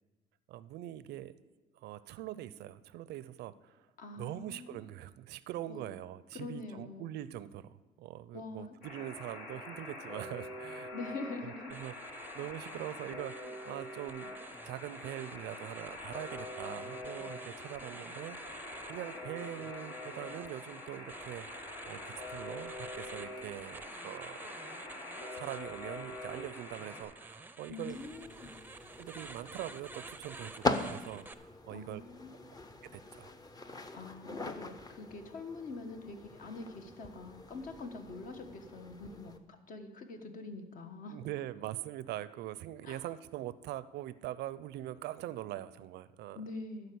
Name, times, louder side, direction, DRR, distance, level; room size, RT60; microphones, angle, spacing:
voice 1, 0.5-1.3 1.7-3.9 4.2-10.9 11.4-14.4 14.6-18.4 18.8-24.5 25.3-28.0 29.0-32.0 32.8-33.3 41.1-46.4, right 13 dB, 80° right, 16 dB, 0.5 m, -43 dB
voice 2, 4.0-4.8 5.7-5.9 6.3-7.1 8.3-8.7 10.9-11.7 27.7-28.5 31.7-32.4 33.9-41.2 42.8-43.1 46.3-46.9, left 3 dB, 55° left, 6 dB, 1.4 m, -44 dB
Alarm, 8.8-27.0, left 2 dB, 75° left, 4.5 m, -45 dB
sound 1, 11.7-31.3, right 3 dB, 10° right, 0.6 m, -51 dB
sound 2, 27.9-39.4, left 3 dB, 20° left, 0.8 m, -42 dB
12.0 x 4.9 x 8.4 m, 1.2 s
cardioid pair, 110°, 17 cm